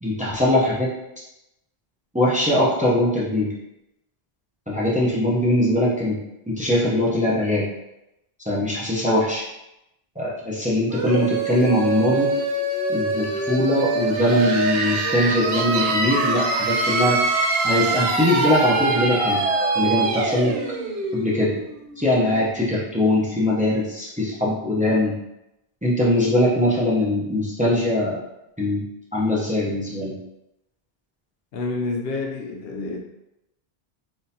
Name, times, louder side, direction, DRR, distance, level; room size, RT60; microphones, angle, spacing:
voice 1, 0.0-1.0 2.1-3.5 4.7-6.2 6.5-7.7 8.5-9.4 10.2-12.3 12.9-19.4 19.7-20.6 21.1-21.5 22.0-25.1 25.8-28.2 28.6-28.8 29.1-30.2, left 1 dB, 10° right, -6 dB, 0.6 m, -21 dB
sound 1, 10.9-22.4, right 3 dB, 75° right, 0.8 m, -24 dB
voice 2, 31.5-33.0, left 3 dB, 75° left, 1 dB, 0.8 m, -28 dB
3.7 x 2.6 x 2.7 m, 0.89 s
omnidirectional pair, 1.0 m